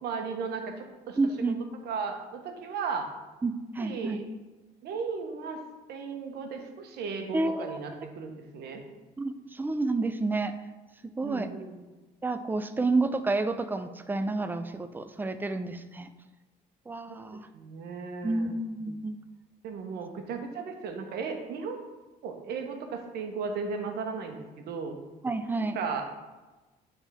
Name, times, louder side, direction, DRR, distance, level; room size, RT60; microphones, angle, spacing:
voice 1, 0.0-1.2 1.8-3.1 3.8-4.2 4.8-5.6 5.9-8.8 11.2-11.8 17.1-18.5 19.6-21.8 22.2-24.9 25.6-26.0, right 5 dB, 70° right, 4 dB, 1.0 m, -36 dB
voice 2, 1.2-1.6 3.4-4.2 7.3-7.8 9.2-10.5 11.2-11.5 12.2-16.1 16.9-17.5 18.2-19.1 25.2-25.8, right 3 dB, 10° right, 9 dB, 0.4 m, -29 dB
9.7 x 3.6 x 3.4 m, 1.2 s
cardioid pair, 110°, 17 cm